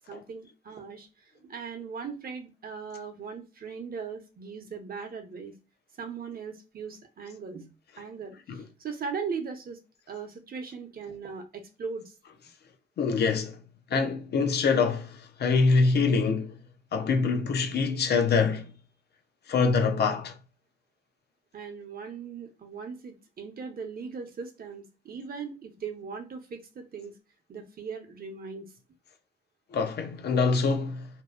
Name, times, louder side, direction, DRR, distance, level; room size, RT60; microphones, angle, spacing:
voice 1, 0.1-1.1 1.5-5.5 6.0-7.7 8.0-9.8 10.1-12.0 21.5-27.1 27.5-28.7, right 5 dB, 60° right, 0.6 m, -39 dB
voice 2, 13.0-13.6 13.9-16.5 16.9-18.7 19.5-20.4 29.7-31.1, left 4 dB, 70° left, 0.4 m, -25 dB
2.6 x 2.0 x 2.3 m
wide cardioid pair, 95°, 17 cm